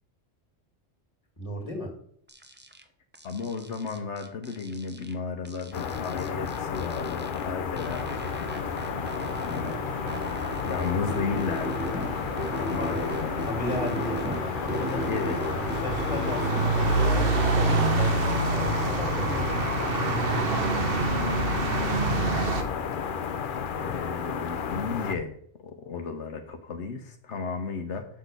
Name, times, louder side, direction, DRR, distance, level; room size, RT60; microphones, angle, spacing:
voice 1, 1.4-1.9 12.6-13.0 13.4-15.0 15.7-19.4, left 1 dB, 30° left, 2 dB, 2.3 m, -35 dB
sound 1, 2.3-2.8 3.1-5.1 5.4-7.5 7.8-9.8 10.1-12.1 12.4-14.4 14.7-16.7 17.0-19.0 19.3-20.4, right 1 dB, 10° right, 0.7 m, -37 dB
voice 2, 3.2-8.0 9.4-9.8 10.7-11.9 12.7-13.4 14.2-14.3 14.7-15.5 20.2-20.5 20.9-22.0 22.3-23.2 23.7-25.4 25.6-28.1, left 4 dB, 80° left, 5 dB, 1.2 m, -34 dB
sound 2, 5.7-25.2, left 7 dB, 55° left, 0.8 m, -32 dB
sound 3, 7.9-22.6, right 3 dB, 55° right, 1.2 m, -29 dB
6.4 x 6.2 x 6.6 m, 0.64 s
omnidirectional pair, 1.2 m